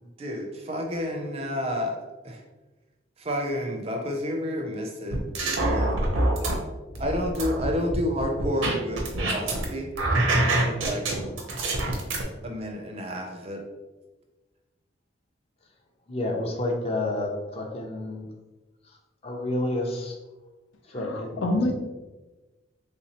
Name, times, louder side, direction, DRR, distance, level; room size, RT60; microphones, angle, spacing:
voice 1, 0.0-2.4 3.2-5.2 5.5-6.0 7.0-9.9 10.2-11.1 12.4-13.6, equal, 30° right, 2 dB, 0.5 m, -30 dB
sound 1, 5.1-6.6 6.9-9.6 9.9-12.2, right 2 dB, 90° right, 0.8 m, -25 dB
voice 2, 5.5-6.3 20.9-21.7, left 2 dB, 90° left, 4 dB, 0.5 m, -29 dB
voice 3, 16.1-18.3 19.2-20.1 20.9-21.5, left 1 dB, 30° left, 1 dB, 0.5 m, -29 dB
3.3 x 3.0 x 2.8 m, 1.2 s
head